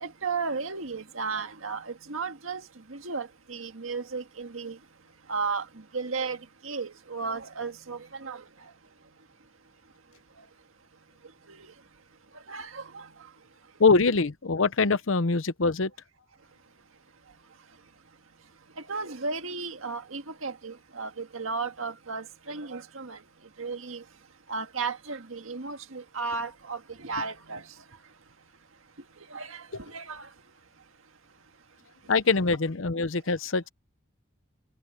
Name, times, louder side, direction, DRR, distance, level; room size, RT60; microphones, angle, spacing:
voice 1, 0.0-2.6 2.9-4.8 5.3-5.7 5.9-6.4 6.6-8.4 11.5-11.6 12.5-13.0 18.9-23.2 23.6-24.0 24.5-27.6 29.3-30.3, right 4 dB, 90° right, 1.8 m, -34 dB
voice 2, 13.8-15.9 32.1-33.7, left 4 dB, 75° left, 0.8 m, -23 dB
head